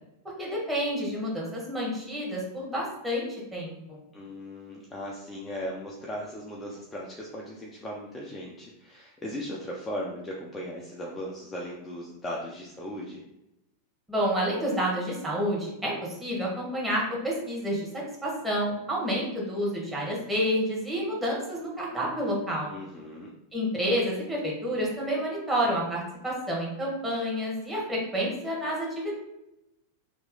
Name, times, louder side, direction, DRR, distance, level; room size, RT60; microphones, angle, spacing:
voice 1, 0.4-4.0 14.1-17.9 18.2-22.7 23.5-29.1, equal, 10° right, -4 dB, 1.4 m, -29 dB
voice 2, 4.1-13.2 22.7-23.3, equal, 15° left, -3 dB, 0.6 m, -37 dB
3.0 x 2.8 x 3.8 m, 0.88 s
figure-of-eight pair, 90°, 0 cm